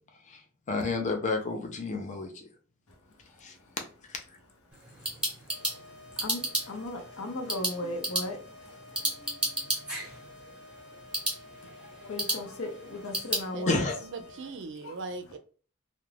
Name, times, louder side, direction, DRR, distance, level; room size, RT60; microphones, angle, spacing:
voice 1, 0.7-2.5 3.4-3.6 4.1-4.2 13.7-13.9, left 3 dB, 35° left, 0.5 m, -30 dB
voice 2, 3.3-3.6 4.8-10.8 11.3-13.8 14.8-15.0, left 1 dB, 75° left, 0.7 m, -40 dB
sound 1, 4.7-13.5, right 1 dB, 5° right, 0.8 m, -34 dB
sound 2, 5.5-14.5, left 2 dB, 55° left, 1.0 m, -51 dB
voice 3, 13.5-15.4, right 3 dB, 60° right, 0.4 m, -40 dB
2.4 x 2.1 x 3.1 m
head